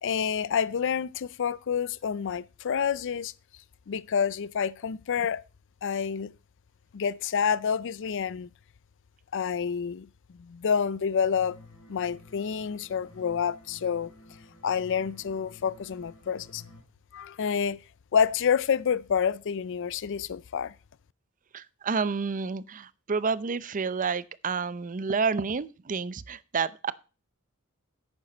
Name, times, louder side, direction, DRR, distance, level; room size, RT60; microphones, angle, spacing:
voice 1, 0.0-3.3 3.9-5.4 5.8-6.3 6.9-8.5 9.3-10.1 10.3-11.6 11.9-14.1 14.6-16.6 17.1-17.8 18.1-20.7, left 7 dB, 60° left, 0.4 m, -28 dB
sound 1, 11.2-16.8, left 2 dB, 80° left, 3.4 m, -52 dB
voice 2, 21.5-26.9, right 5 dB, 35° right, 0.5 m, -29 dB
11.0 x 8.9 x 4.3 m
head